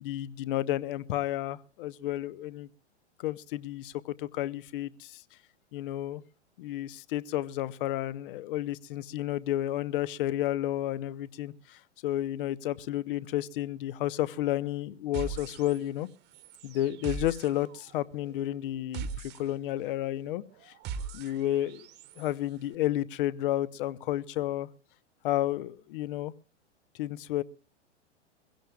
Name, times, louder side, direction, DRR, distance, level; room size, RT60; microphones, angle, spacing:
voice 1, 0.0-2.7 3.2-5.2 5.7-6.2 6.6-16.1 16.6-20.7 21.1-21.9 22.2-24.7 25.2-26.3 26.9-27.4, left 13 dB, 45° left, 0.8 m, -31 dB
sound 1, 15.1-22.3, right 6 dB, 30° right, 1.2 m, -41 dB
22.5 x 16.5 x 2.3 m
figure-of-eight pair, 105°, 36 cm